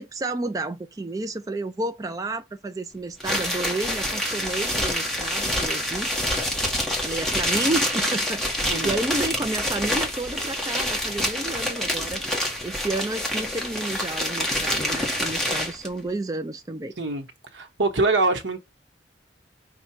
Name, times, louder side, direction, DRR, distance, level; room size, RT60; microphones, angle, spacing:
voice 1, 0.0-6.1 7.0-12.2 12.6-16.9, right 2 dB, 20° right, 0.3 m, -31 dB
sound 1, 3.2-15.9, equal, ahead, 1.2 m, -27 dB
voice 2, 8.6-8.9 17.0-17.2 17.5-18.6, right 3 dB, 80° right, 1.0 m, -24 dB
5.5 x 2.3 x 4.2 m
head